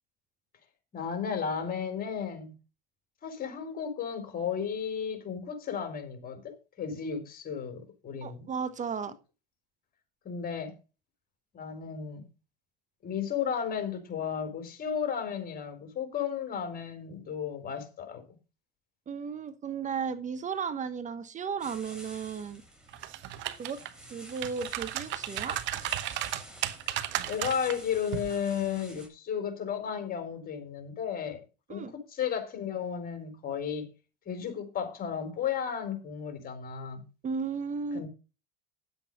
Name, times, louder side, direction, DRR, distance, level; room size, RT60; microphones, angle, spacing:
voice 1, 0.9-2.5 3.2-8.5 10.2-10.7 11.5-12.2 13.0-18.2 27.3-31.4 31.7-33.9 34.3-37.0 37.9-38.1, left 7 dB, 45° left, 4.2 m, -34 dB
voice 2, 8.2-9.1 19.1-22.6 23.6-23.8 24.1-25.6 31.7-31.9 37.2-38.1, right 6 dB, 35° right, 1.3 m, -34 dB
sound 1, 21.6-29.1, right 1 dB, 5° right, 5.7 m, -50 dB
sound 2, 22.9-23.9 24.3-27.8 28.1-28.3, right 13 dB, 60° right, 1.2 m, -34 dB
10.5 x 8.0 x 5.4 m
hypercardioid pair, 80°, 21 cm